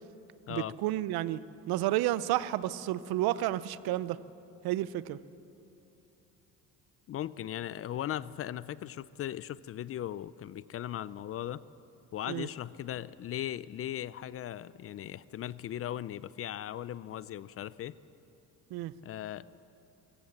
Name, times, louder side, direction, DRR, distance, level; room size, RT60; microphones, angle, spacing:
voice 1, 0.5-1.4 1.7-4.2 4.6-5.2 12.3-12.5 18.7-18.9, right 15 dB, 80° right, 17 dB, 0.7 m, -31 dB
voice 2, 7.1-11.6 12.1-17.9 19.0-19.6, left 11 dB, 40° left, 18 dB, 0.4 m, -38 dB
23.0 x 15.5 x 7.3 m, 2.8 s
cardioid pair, 130°, 36 cm